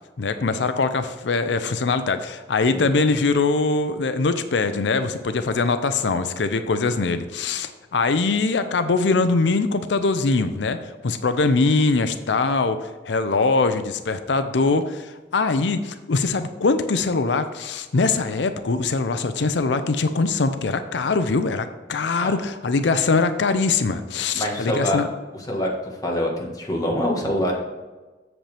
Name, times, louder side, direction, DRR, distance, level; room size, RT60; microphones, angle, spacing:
voice 1, 0.2-25.1, left 3 dB, 85° left, 10 dB, 0.6 m, -22 dB
voice 2, 24.3-25.0 25.5-25.7 26.0-27.5, left 1 dB, 20° left, -1 dB, 1.5 m, -24 dB
7.9 x 7.4 x 3.4 m, 1.3 s
head